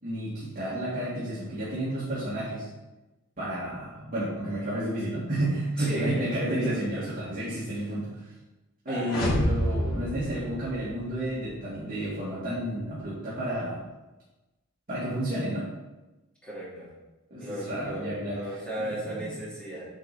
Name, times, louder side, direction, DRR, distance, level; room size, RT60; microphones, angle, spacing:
voice 1, 0.0-2.7 3.4-8.3 8.8-13.8 14.9-15.7 17.3-18.6 18.9-19.0, right 1 dB, 40° right, -9 dB, 2.2 m, -31 dB
voice 2, 5.8-6.6 6.9-7.2 8.9-9.2 16.4-16.9 17.4-19.9, right 1 dB, 5° left, -8 dB, 2.8 m, -36 dB
sound 1, 9.0-11.2, equal, 80° left, 2.9 m, -28 dB
8.6 x 4.9 x 4.3 m, 1.1 s
head